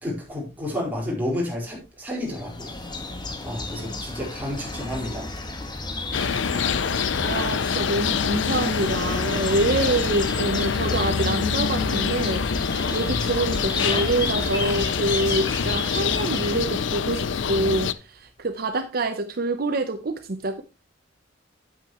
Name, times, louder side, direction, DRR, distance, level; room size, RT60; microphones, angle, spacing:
voice 1, 0.0-2.7 3.4-5.3, left 1 dB, 10° right, -3 dB, 4.3 m, -30 dB
sound 1, 2.2-17.1, left 2 dB, 25° left, 1.4 m, -33 dB
sound 2, 6.1-17.9, left 6 dB, 80° left, 0.6 m, -25 dB
voice 2, 7.2-12.5 12.9-20.6, right 2 dB, 55° right, 8 dB, 0.8 m, -26 dB
9.4 x 8.8 x 3.0 m, 0.28 s
head